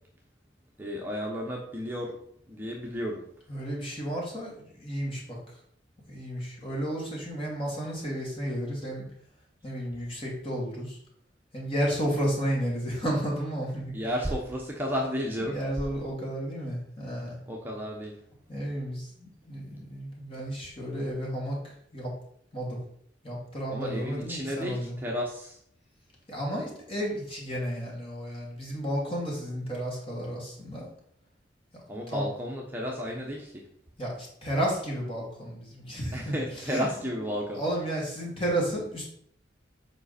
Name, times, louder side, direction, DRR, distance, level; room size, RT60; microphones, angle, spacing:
voice 1, 0.8-2.2 2.5-3.2 13.9-15.6 17.5-18.1 23.7-25.6 31.9-33.6 36.1-37.6, equal, 10° right, -2 dB, 0.9 m, -32 dB
voice 2, 3.5-5.4 6.1-9.1 9.6-11.0 11.5-14.3 15.4-17.4 18.5-22.1 22.5-22.8 23.2-25.0 26.3-30.9 32.1-32.3 34.0-37.1 37.5-39.0, equal, 30° left, -3 dB, 2.7 m, -32 dB
7.6 x 5.1 x 4.3 m, 0.66 s
head